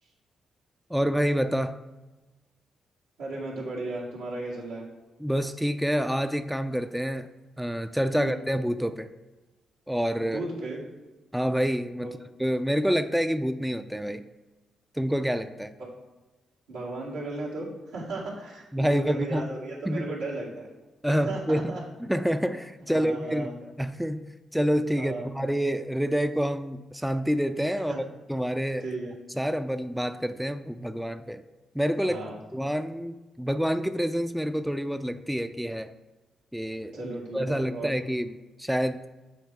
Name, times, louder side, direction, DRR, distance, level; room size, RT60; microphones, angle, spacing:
voice 1, 0.9-1.8 5.2-7.3 7.6-9.1 9.9-10.4 11.3-12.1 12.4-14.2 15.0-15.7 18.7-19.5 19.9-20.1 21.0-21.7 22.0-24.2 24.5-28.0 28.3-28.8 29.4-31.4 31.7-32.2 32.5-35.9 36.5-38.3 38.6-39.0, equal, 5° right, 10 dB, 0.4 m, -27 dB
voice 2, 3.2-4.9 8.1-8.4 10.2-10.8 12.0-12.1 16.7-20.7 21.1-21.8 22.9-23.5 25.0-25.3 27.9-28.0 28.8-29.1 32.1-32.4 36.9-37.9, right 2 dB, 85° right, -6 dB, 2.1 m, -35 dB
8.2 x 3.4 x 4.7 m, 1.2 s
hypercardioid pair, 45°, 0 cm